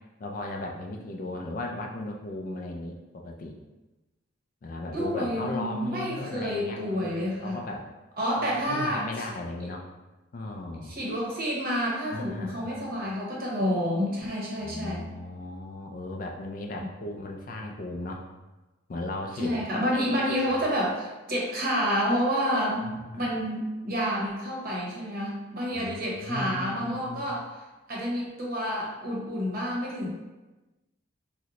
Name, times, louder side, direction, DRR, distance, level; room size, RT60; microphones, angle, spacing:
voice 1, 0.2-3.6 4.6-7.8 8.4-9.9 10.3-10.9 12.1-12.8 14.6-18.3 18.9-20.6 22.8-23.3 25.7-27.3, left 2 dB, 45° left, 1 dB, 0.3 m, -36 dB
voice 2, 4.9-7.6 8.2-9.1 10.8-15.1 19.4-22.9 23.2-27.4 27.9-30.2, equal, 45° right, -4 dB, 0.8 m, -29 dB
3.7 x 2.1 x 2.9 m, 1.1 s
head